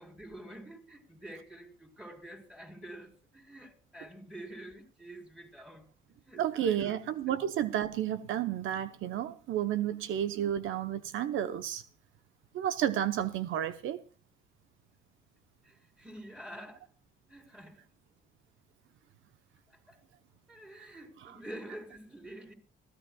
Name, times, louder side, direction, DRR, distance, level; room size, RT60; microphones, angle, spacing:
voice 1, 0.0-5.9 6.2-7.0 7.3-7.4 9.8-10.0 15.6-16.9 17.3-17.8 19.7-20.0 20.5-22.5, right 1 dB, 5° right, 4.1 m, -48 dB
voice 2, 6.4-11.8 12.5-14.0 20.8-20.9, right 10 dB, 80° right, 0.8 m, -31 dB
22.5 x 14.0 x 2.3 m
cardioid pair, 90°, 20 cm